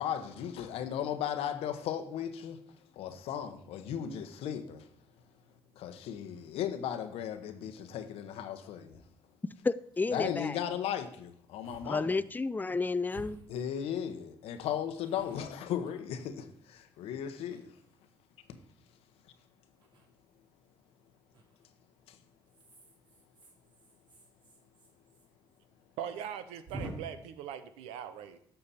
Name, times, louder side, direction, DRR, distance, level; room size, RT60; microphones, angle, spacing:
voice 1, 0.0-2.6 2.9-4.9 5.7-9.0 10.1-12.2 13.5-17.7 22.1-22.2, left 9 dB, 80° left, 0.9 m, -36 dB
sound 1, 8.9-9.0 9.5-9.6 9.8-10.2 11.1-11.2 11.6-11.9 12.2-12.3 13.1-14.1 14.6-16.8 17.3-18.1 19.8-20.1 21.3-21.7 22.5-25.3 25.5-25.6 25.9-26.0 26.7-26.9, right 1 dB, 55° right, 2.7 m, -50 dB
voice 2, 9.6-10.6 11.9-13.4, left 3 dB, 20° left, 0.5 m, -31 dB
voice 3, 26.0-28.4, right 9 dB, 90° right, 0.7 m, -41 dB
11.5 x 6.7 x 4.2 m
supercardioid pair, 70°, 10 cm